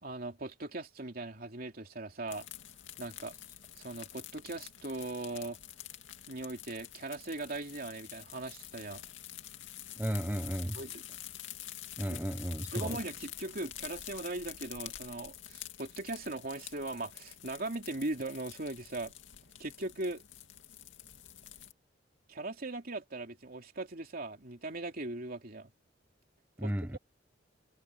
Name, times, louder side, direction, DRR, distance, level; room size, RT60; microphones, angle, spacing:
voice 1, 0.0-2.5 3.0-3.3 3.8-5.6 6.3-9.0 10.7-11.0 12.1-12.2 12.7-19.1 19.6-20.2 22.3-25.7 26.6-27.0, right 2 dB, 55° right, 3.1 m, -39 dB
sound 1, 2.3-21.7, left 12 dB, 90° left, 2.3 m, -48 dB
voice 2, 10.0-10.8 12.0-13.0 26.6-27.0, equal, 10° right, 1.1 m, -34 dB
head